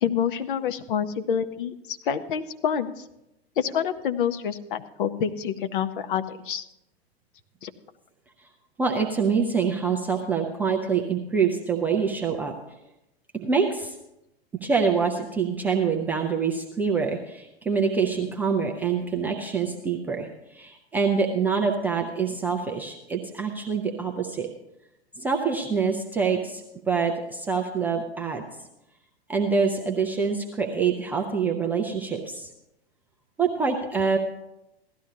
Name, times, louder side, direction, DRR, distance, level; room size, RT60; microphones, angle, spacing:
voice 1, 0.0-3.0 3.6-6.6 7.6-7.7, left 8 dB, 50° left, 9 dB, 0.8 m, -27 dB
voice 2, 8.8-12.6 13.3-14.0 14.6-24.5 25.2-28.4 29.3-32.5 33.4-34.2, right 5 dB, 5° right, 1 dB, 0.3 m, -25 dB
16.0 x 12.0 x 2.8 m, 0.88 s
figure-of-eight pair, 105°, 32 cm